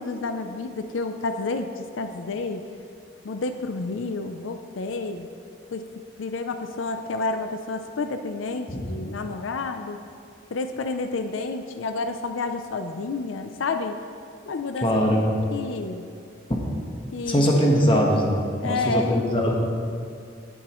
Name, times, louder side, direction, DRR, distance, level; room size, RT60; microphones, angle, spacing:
voice 1, 0.0-2.7 3.2-5.3 5.7-5.9 6.2-10.0 10.5-14.0 14.5-14.9 15.5-16.1 17.1-17.5 18.6-19.3, left 3 dB, 85° left, 8 dB, 0.5 m, -30 dB
voice 2, 14.8-15.2 16.5-16.6 17.3-19.5, equal, 25° left, -1 dB, 1.2 m, -21 dB
17.5 x 7.8 x 3.1 m, 2.3 s
head